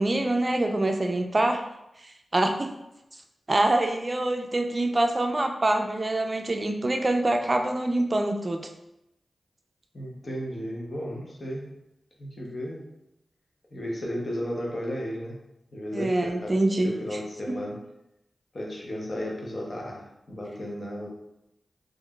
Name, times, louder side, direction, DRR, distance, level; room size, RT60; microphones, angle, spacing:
voice 1, 0.0-1.6 2.3-2.7 3.5-8.7 15.9-17.2 17.5-17.6, right 1 dB, 40° right, 4 dB, 0.4 m, -25 dB
voice 2, 9.9-11.7 12.2-12.9 13.7-15.4 15.7-16.6 16.8-17.8 18.5-21.1, equal, 55° left, -2 dB, 0.8 m, -34 dB
3.6 x 2.5 x 2.2 m, 0.86 s
cardioid pair, 40°, 0 cm